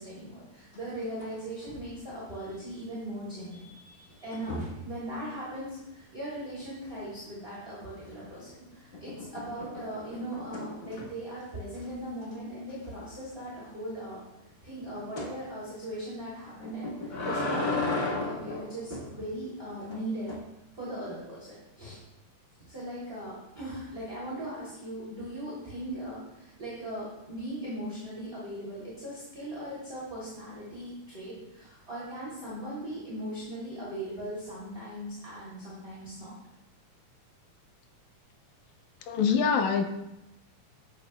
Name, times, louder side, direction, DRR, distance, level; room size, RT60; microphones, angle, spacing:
voice 1, 0.0-4.6 4.8-14.2 14.6-20.3 20.7-22.0 22.7-36.3, right 1 dB, 20° right, -8 dB, 3.3 m, -39 dB
sound 1, 0.7-1.4 1.6-2.0 4.3-4.9 8.0-8.5 8.9-11.3 11.7-11.9 12.2-12.3 12.7-12.8 15.2-15.4 16.6-19.1 19.9-20.4, left 2 dB, 40° left, 0.8 m, -35 dB
voice 2, 39.1-39.9, left 6 dB, 70° left, 5 dB, 2.2 m, -24 dB
14.0 x 10.5 x 2.4 m, 0.91 s
omnidirectional pair, 3.7 m